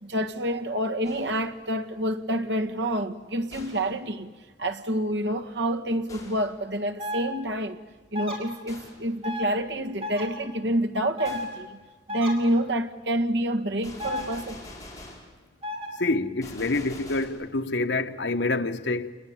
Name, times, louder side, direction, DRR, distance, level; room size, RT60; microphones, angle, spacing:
voice 1, 0.0-4.3 4.6-7.8 8.1-11.8 12.1-14.6, right 1 dB, 80° right, 1.7 m, -28 dB
Gunshot gunfire, 1.0-1.6 3.5-4.0 6.1-6.6 8.7-9.1 11.2-11.6 13.8-15.4 16.4-17.3, left 2 dB, 20° left, 5.0 m, -45 dB
sound 1, 7.0-7.2 8.1-8.4 9.2-9.5 10.0-10.3 11.2-11.4 12.1-12.3 14.0-14.2 15.6-15.9, left 2 dB, 35° right, 5.9 m, -32 dB
voice 2, 16.0-19.1, left 2 dB, 85° left, 1.3 m, -27 dB
28.0 x 21.0 x 8.8 m
head